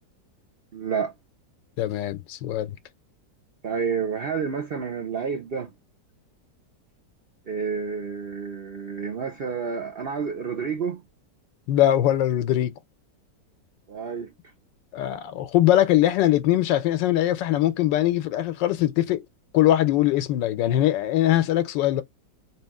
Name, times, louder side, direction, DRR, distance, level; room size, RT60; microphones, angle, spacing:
voice 1, 0.7-1.1 3.6-5.7 7.5-11.0 13.9-14.3, right 6 dB, 90° right, 0.5 m, -29 dB
voice 2, 1.8-2.8 11.7-12.7 14.9-19.3 19.5-22.0, left 13 dB, 90° left, 1.3 m, -21 dB
3.3 x 2.8 x 3.5 m
omnidirectional pair, 1.9 m